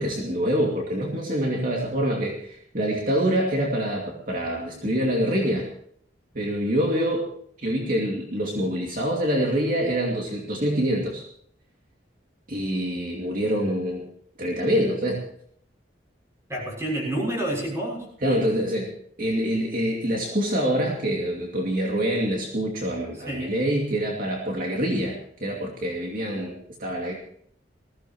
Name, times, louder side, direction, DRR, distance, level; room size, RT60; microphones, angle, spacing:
voice 1, 0.0-5.7 6.3-7.2 7.6-11.2 12.5-14.1 14.4-15.2 18.2-18.9 19.2-27.1, equal, 50° right, -1 dB, 2.5 m, -25 dB
voice 2, 16.5-18.1 23.3-23.6, right 1 dB, 15° right, -2 dB, 6.3 m, -28 dB
20.5 x 16.0 x 3.1 m, 0.63 s
head